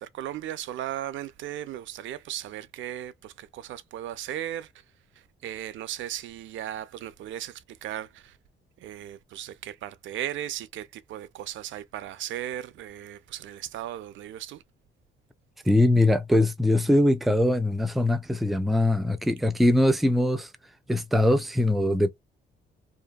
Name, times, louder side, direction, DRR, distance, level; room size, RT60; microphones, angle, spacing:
voice 1, 0.0-4.7 5.2-8.4 8.8-14.6, right 12 dB, 75° right, 0.4 m, -36 dB
voice 2, 15.7-20.5 20.9-22.1, left 1 dB, ahead, 0.4 m, -22 dB
2.7 x 2.2 x 2.2 m
cardioid pair, 90°, 20 cm